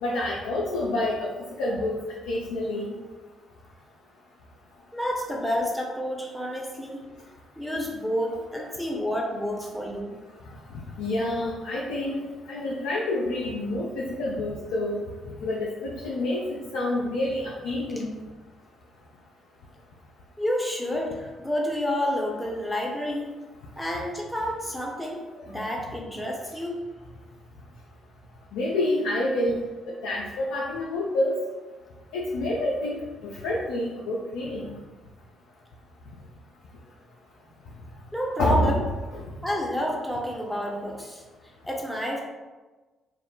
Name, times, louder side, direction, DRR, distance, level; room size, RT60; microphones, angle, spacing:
voice 1, 0.0-1.3 1.6-3.0 10.7-15.0 15.4-18.2 28.5-29.6 29.9-31.4 32.1-34.8 38.4-38.7 39.1-39.2, left 1 dB, 70° left, -4 dB, 0.3 m, -28 dB
voice 2, 4.9-7.0 7.6-10.1 20.4-23.3 23.8-26.8 38.1-38.8 39.4-41.2 41.6-42.2, equal, 5° left, -2 dB, 0.7 m, -29 dB
2.3 x 2.0 x 3.7 m, 1.3 s
figure-of-eight pair, 40°, 0 cm